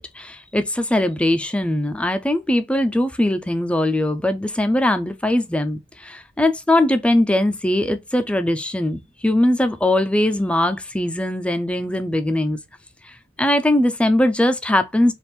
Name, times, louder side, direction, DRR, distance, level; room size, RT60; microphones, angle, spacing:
voice 1, 0.0-12.6 13.0-15.1, left 1 dB, 5° left, 0.4 m, -20 dB
3.4 x 2.4 x 4.2 m
head